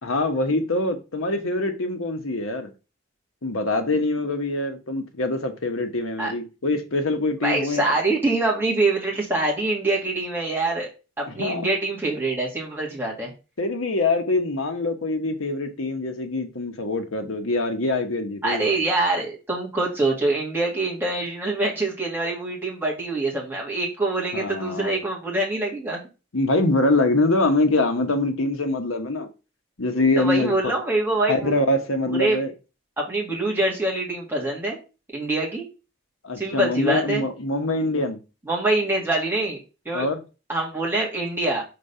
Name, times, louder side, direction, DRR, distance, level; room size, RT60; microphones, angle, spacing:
voice 1, 0.0-2.7 3.4-7.8 11.3-11.6 13.6-18.8 24.3-24.9 26.3-29.3 29.8-30.7 31.3-32.5 36.2-38.2 39.9-40.2, left 2 dB, 85° left, 1.1 m, -24 dB
voice 2, 7.4-10.9 11.2-13.3 18.4-26.0 30.2-31.6 32.1-32.4 33.0-34.8 35.1-35.7 36.4-37.2 38.5-39.6 39.9-40.1 40.5-41.6, right 2 dB, 10° right, 2.0 m, -24 dB
5.3 x 3.9 x 5.5 m
head